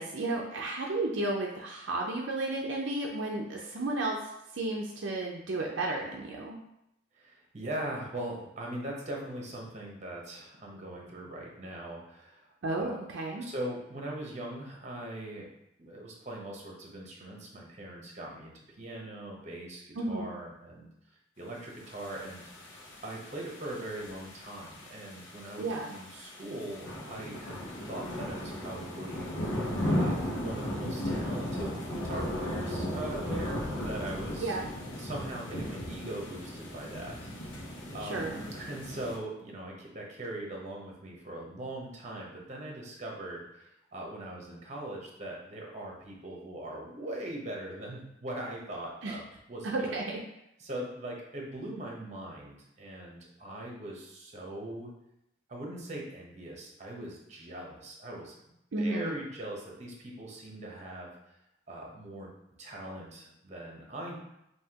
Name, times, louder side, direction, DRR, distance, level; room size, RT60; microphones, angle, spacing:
voice 1, 0.0-4.2 4.5-6.6 12.6-13.5 19.9-20.4 25.6-26.0 34.4-34.7 38.0-38.4 49.0-49.2 49.6-50.2 58.7-59.2, right 2 dB, 70° right, -1 dB, 0.5 m, -33 dB
voice 2, 7.2-13.0 13.4-15.5 15.8-20.9 21.4-22.4 23.0-27.6 27.9-29.6 29.9-34.5 35.0-49.2 49.5-50.0 50.6-54.9 55.5-58.3 58.8-61.1 61.7-62.3 62.6-64.2, right 1 dB, 35° right, -1 dB, 0.9 m, -41 dB
sound 1, 22.0-39.2, left 1 dB, 75° left, 1.0 m, -36 dB
5.5 x 2.8 x 2.9 m, 0.82 s
head